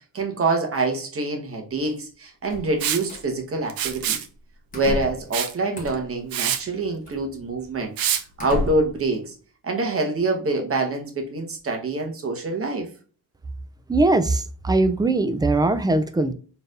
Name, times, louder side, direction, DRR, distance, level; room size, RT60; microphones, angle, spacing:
voice 1, 0.1-4.2 4.7-7.9 8.4-9.3 9.6-12.9, right 2 dB, 35° right, 1.2 m, -25 dB
sound 1, 2.4-3.2 3.8-4.1 4.7-5.3 5.7-6.2 7.1-7.2 7.8-7.9 8.4-9.0, left 2 dB, 20° left, 1.5 m, -32 dB
Liquid, 2.8-3.0 3.7-4.3 5.3-5.5 5.9-6.0 6.3-6.6 8.0-8.2, right 9 dB, 65° right, 0.7 m, -25 dB
voice 2, 13.9-16.3, right 2 dB, 10° right, 0.3 m, -20 dB
4.4 x 3.4 x 2.5 m
cardioid pair, 120°, 39 cm